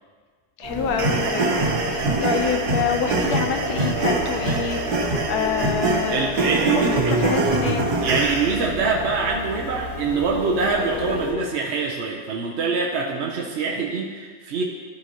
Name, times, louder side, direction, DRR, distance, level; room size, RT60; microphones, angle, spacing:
voice 1, 0.6-7.9, left 7 dB, 80° left, 5 dB, 1.3 m, -27 dB
sound 1, 0.6-11.3, left 2 dB, 35° right, 2.0 m, -31 dB
sound 2, 1.0-8.6, right 3 dB, 80° right, 1.6 m, -24 dB
voice 2, 6.1-7.1 8.0-14.6, right 4 dB, 55° right, -1 dB, 0.9 m, -24 dB
13.0 x 5.5 x 2.9 m, 1.6 s
omnidirectional pair, 1.7 m